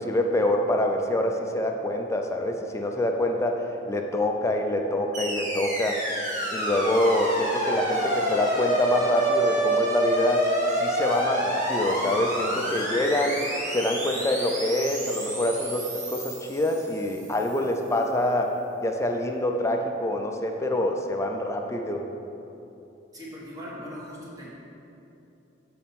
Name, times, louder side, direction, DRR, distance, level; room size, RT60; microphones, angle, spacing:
voice 1, 0.0-6.0 6.5-10.5 10.8-13.4 13.7-22.0, left 1 dB, 15° left, 3 dB, 0.5 m, -26 dB
sound 1, 5.1-17.4, right 1 dB, 40° right, 1.5 m, -28 dB
voice 2, 23.1-24.5, equal, 20° right, -6 dB, 1.5 m, -40 dB
7.3 x 4.2 x 5.9 m, 2.9 s
head